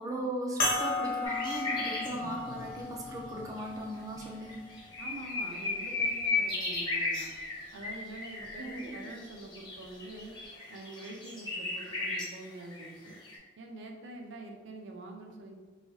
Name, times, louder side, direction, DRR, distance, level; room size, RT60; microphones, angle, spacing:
voice 1, 0.0-4.7 8.6-8.9, right 1 dB, 20° right, -2 dB, 0.4 m, -37 dB
sound 1, 0.6-5.4 6.2-6.3 8.4-8.5, left 2 dB, 50° left, 0.9 m, -35 dB
sound 2, 1.2-2.2 3.6-3.7 4.2-4.3 4.5-13.4, left 3 dB, 25° left, 0.6 m, -35 dB
Wild animals, 1.3-6.1, left 1 dB, 80° left, 0.4 m, -52 dB
voice 2, 5.0-7.3 7.7-10.4 10.7-13.2 13.6-15.6, right 2 dB, 75° right, 2 dB, 0.5 m, -45 dB
3.2 x 2.6 x 2.7 m, 1.3 s
head